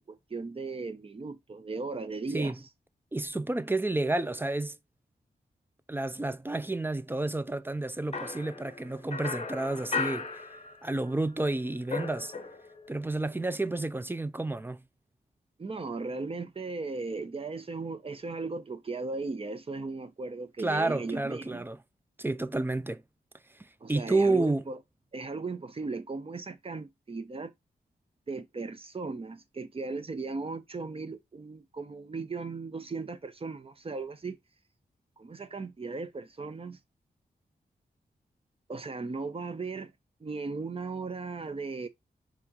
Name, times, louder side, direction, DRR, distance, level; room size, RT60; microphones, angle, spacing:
voice 1, 0.0-2.6 15.6-21.6 23.8-24.8 25.1-27.5 28.3-34.4 35.2-36.8 38.7-39.9 40.2-41.9, right 3 dB, 35° right, 0.7 m, -37 dB
voice 2, 3.1-4.7 5.9-10.3 10.8-12.3 12.9-14.8 20.6-21.8 22.2-23.0 23.9-24.6, right 2 dB, 15° right, 0.3 m, -30 dB
sound 1, 8.1-11.1 11.4-12.9, left 4 dB, 40° left, 0.8 m, -36 dB
4.4 x 3.0 x 3.7 m
wide cardioid pair, 85°, 17 cm